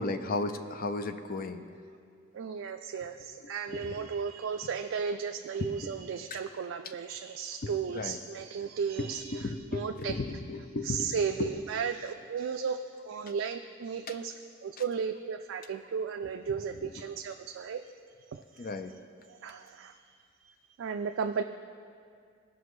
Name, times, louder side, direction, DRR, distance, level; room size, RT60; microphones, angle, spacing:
voice 1, 0.0-1.6 3.7-4.1 5.6-5.9 6.3-6.4 7.6-8.2 8.6-8.7 9.0-11.1 11.4-11.5 18.6-18.9, left 2 dB, 45° left, 8 dB, 0.6 m, -35 dB
voice 2, 2.3-10.2 10.8-17.9 18.3-18.7 19.3-20.1 20.4-21.4, right 6 dB, 65° right, 5 dB, 0.3 m, -35 dB
17.5 x 5.9 x 3.1 m, 2.3 s
head